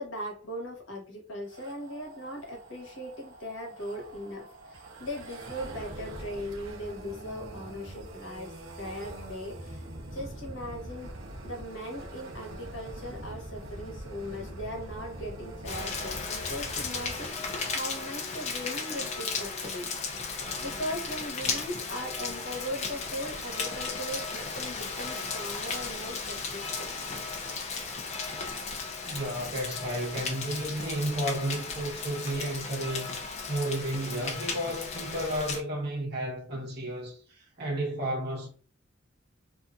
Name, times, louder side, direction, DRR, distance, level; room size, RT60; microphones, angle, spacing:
voice 1, 0.0-9.8 10.1-11.1 11.4-20.1 20.6-26.9, equal, 80° left, 1.0 m, -39 dB
sound 1, 1.5-17.3, right 1 dB, 80° right, 0.7 m, -43 dB
Rain, 15.7-35.6, left 4 dB, 35° left, 0.4 m, -35 dB
voice 2, 29.1-33.2 33.5-37.2 37.6-38.5, right 1 dB, 55° right, 1.0 m, -32 dB
2.7 x 2.4 x 2.3 m
head